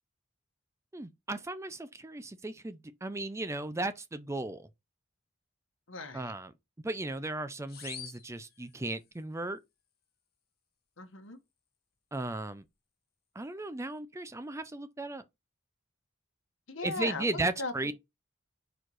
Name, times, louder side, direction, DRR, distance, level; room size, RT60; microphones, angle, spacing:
voice 1, 0.9-4.7 6.1-6.5 6.8-9.6 12.1-12.6 13.4-15.2 16.8-17.9, right 2 dB, 15° right, 0.5 m, -36 dB
voice 2, 5.9-6.3 11.0-11.4 16.7-17.3 17.6-17.7, left 3 dB, 80° left, 1.3 m, -38 dB
sound 1, 7.7-9.2, left 8 dB, 55° left, 1.4 m, -47 dB
4.5 x 4.4 x 4.7 m
head